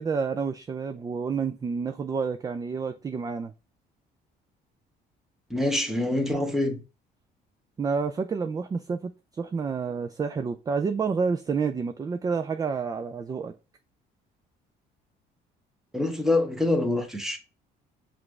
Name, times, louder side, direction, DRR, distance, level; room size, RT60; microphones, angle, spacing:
voice 1, 0.0-3.5 7.8-13.5, right 5 dB, 20° right, 0.3 m, -29 dB
voice 2, 5.5-6.8 15.9-17.4, left 2 dB, ahead, 1.0 m, -25 dB
5.8 x 2.5 x 3.3 m
cardioid pair, 110°, 17 cm